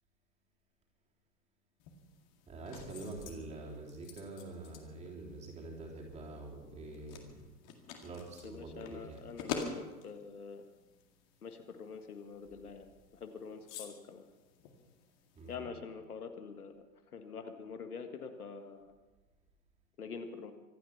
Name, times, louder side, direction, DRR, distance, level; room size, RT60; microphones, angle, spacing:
sound 1, 1.8-15.6, left 6 dB, 30° left, 2.0 m, -49 dB
voice 1, 2.4-7.6 8.0-9.2 15.3-15.7, right 2 dB, 15° right, -2 dB, 3.4 m, -46 dB
voice 2, 8.4-10.6 11.4-12.9 13.2-14.3 15.5-16.7 17.1-18.9 20.0-20.5, left 5 dB, 65° left, 7 dB, 1.8 m, -45 dB
25.0 x 9.4 x 5.8 m, 1.2 s
figure-of-eight pair, 115°, 49 cm